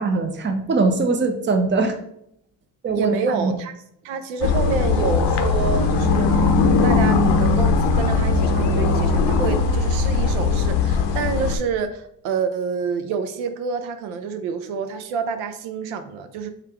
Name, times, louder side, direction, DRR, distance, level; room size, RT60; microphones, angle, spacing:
voice 1, 0.0-2.0 2.8-3.5, right 3 dB, 25° right, 5 dB, 0.6 m, -21 dB
voice 2, 2.9-3.7 4.0-6.5 6.8-16.5, right 5 dB, 70° right, 8 dB, 0.6 m, -27 dB
sound 1, 4.4-11.6, left 4 dB, 55° left, 0.6 m, -19 dB
3.3 x 2.4 x 4.3 m, 0.73 s
hypercardioid pair, 60°, 49 cm